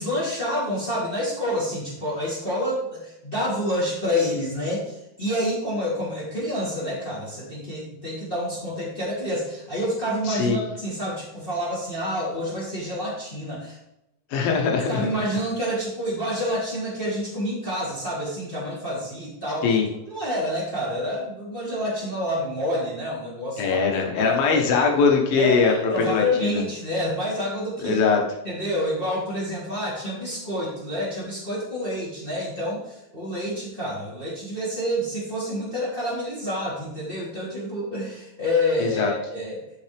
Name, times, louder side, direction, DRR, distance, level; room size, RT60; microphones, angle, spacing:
voice 1, 0.0-13.8 14.7-19.8 20.1-23.9 24.1-24.6 25.4-28.0 28.4-39.6, left 1 dB, 15° left, -7 dB, 2.9 m, -28 dB
voice 2, 10.2-10.6 14.3-15.1 19.6-19.9 23.6-26.6 27.8-28.2 38.8-39.1, left 5 dB, 75° left, 1 dB, 3.1 m, -21 dB
12.0 x 5.9 x 3.5 m, 0.85 s
omnidirectional pair, 4.3 m